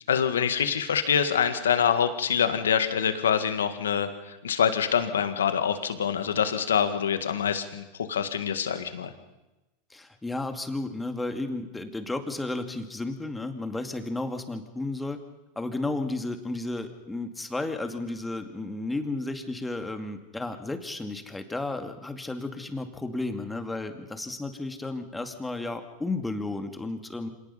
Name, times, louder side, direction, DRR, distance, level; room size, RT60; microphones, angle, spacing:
voice 1, 0.1-9.1, left 8 dB, 85° left, 10 dB, 1.9 m, -25 dB
voice 2, 9.9-15.2 15.6-27.3, left 2 dB, 10° left, 6 dB, 2.4 m, -33 dB
26.5 x 18.5 x 5.8 m, 1.0 s
hypercardioid pair, 100°, 0 cm